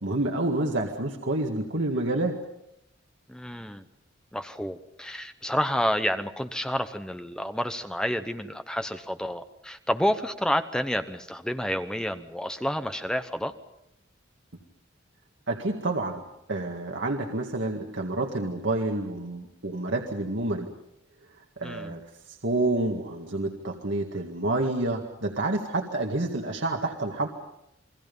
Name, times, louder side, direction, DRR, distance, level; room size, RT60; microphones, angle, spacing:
voice 1, 0.0-2.3 15.5-16.2 16.5-20.7 21.6-22.0 22.4-27.3, right 2 dB, 70° right, 1 dB, 2.0 m, -28 dB
voice 2, 3.3-3.8 4.3-13.5 21.6-22.0, equal, 5° left, 9 dB, 0.9 m, -29 dB
29.0 x 22.5 x 5.4 m, 0.81 s
head